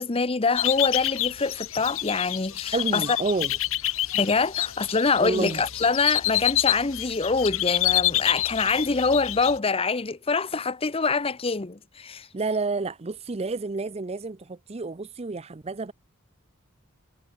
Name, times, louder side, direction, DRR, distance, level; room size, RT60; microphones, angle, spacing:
voice 1, 0.0-3.0 4.1-12.3, left 4 dB, 25° left, 0.7 m, -25 dB
sound 1, 0.6-9.6, left 15 dB, 70° left, 1.8 m, -28 dB
voice 2, 2.7-3.6 5.2-5.6 12.3-15.9, right 3 dB, 30° right, 0.5 m, -29 dB
head